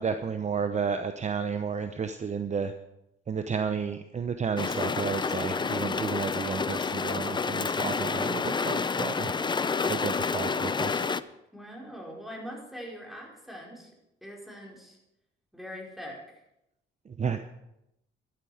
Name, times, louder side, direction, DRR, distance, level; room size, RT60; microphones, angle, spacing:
voice 1, 0.0-2.7 3.3-9.3 9.8-11.1 17.1-17.5, right 6 dB, 35° right, 8 dB, 0.8 m, -32 dB
sound 1, 4.6-11.2, left 5 dB, 25° left, 0.5 m, -29 dB
voice 2, 11.5-13.9 14.2-15.0 15.5-16.4, equal, ahead, -2 dB, 4.8 m, -42 dB
12.5 x 12.0 x 5.0 m, 0.85 s
cardioid pair, 90°, 20 cm